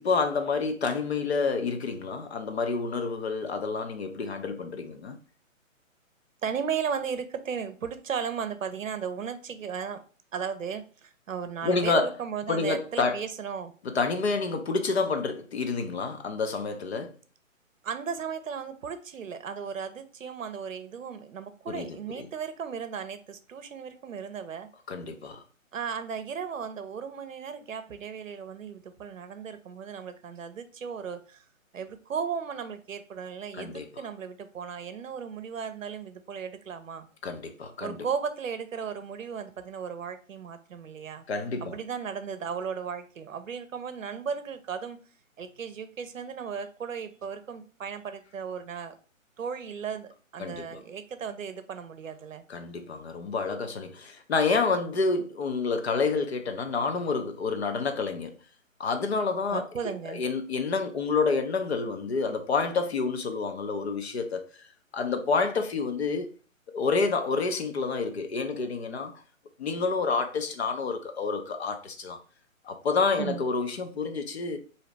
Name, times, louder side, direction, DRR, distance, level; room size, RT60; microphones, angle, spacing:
voice 1, 0.0-5.2 11.6-12.1 12.5-13.2 13.8-17.2 21.7-22.3 24.9-25.4 33.5-33.9 37.2-38.0 41.3-41.8 50.4-50.8 52.5-58.3 58.8-64.7 64.9-66.3 66.7-69.1 69.6-72.2 72.6-74.6, left 4 dB, 50° left, 0.7 m, -28 dB
voice 2, 6.4-10.0 10.3-13.7 17.8-24.7 25.7-31.4 31.7-37.1 37.8-41.2 41.6-45.0 45.4-49.0 49.4-52.4 59.5-60.2 73.2-73.4, right 6 dB, 70° right, 0.6 m, -35 dB
3.8 x 2.8 x 3.2 m
figure-of-eight pair, 140°, 41 cm